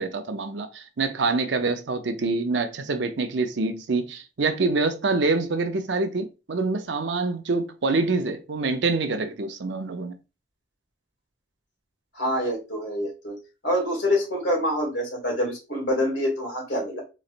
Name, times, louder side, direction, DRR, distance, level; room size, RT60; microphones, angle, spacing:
voice 1, 0.0-10.1, right 3 dB, 80° right, 0.6 m, -26 dB
voice 2, 12.1-13.4 13.6-17.0, left 1 dB, 80° left, 2.2 m, -26 dB
4.0 x 3.2 x 2.5 m
head